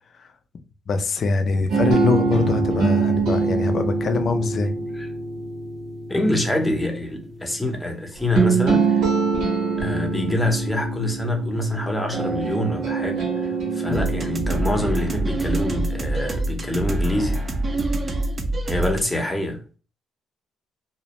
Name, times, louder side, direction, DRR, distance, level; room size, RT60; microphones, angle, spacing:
voice 1, 0.9-4.7, left 4 dB, 55° left, 0.4 m, -23 dB
sound 1, 1.7-17.8, right 4 dB, 80° right, 0.9 m, -25 dB
voice 2, 6.1-9.0 9.8-17.4 18.7-19.6, left 1 dB, 10° left, 0.7 m, -25 dB
sound 2, 13.9-19.0, right 1 dB, 35° right, 0.4 m, -25 dB
2.5 x 2.0 x 2.9 m
cardioid pair, 90°, 0 cm